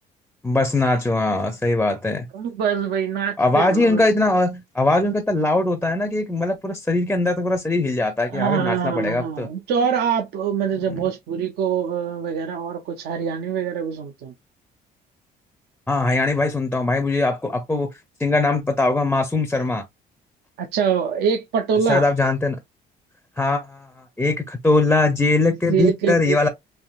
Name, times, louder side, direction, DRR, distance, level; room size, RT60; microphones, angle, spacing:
voice 1, 0.4-2.3 3.4-9.5 15.9-17.9 18.2-19.8 21.9-22.6 23.4-26.5, left 2 dB, 10° left, 0.4 m, -21 dB
voice 2, 2.3-4.1 8.2-14.3 20.6-22.1 25.7-26.5, right 7 dB, 75° right, 0.5 m, -24 dB
3.4 x 2.7 x 2.3 m
cardioid pair, 110°, 17 cm